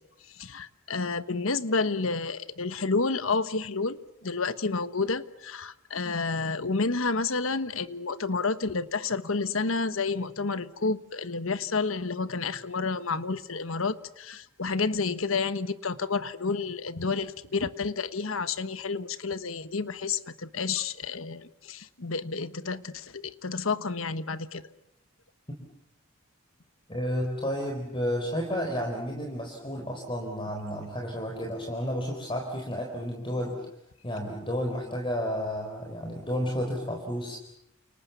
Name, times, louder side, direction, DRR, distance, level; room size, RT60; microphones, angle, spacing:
voice 1, 0.3-4.0 4.2-24.6, left 4 dB, 80° left, 13 dB, 1.3 m, -30 dB
voice 2, 26.9-33.7 34.0-37.4, equal, 25° left, 2 dB, 4.1 m, -31 dB
30.0 x 28.5 x 7.0 m, 0.79 s
head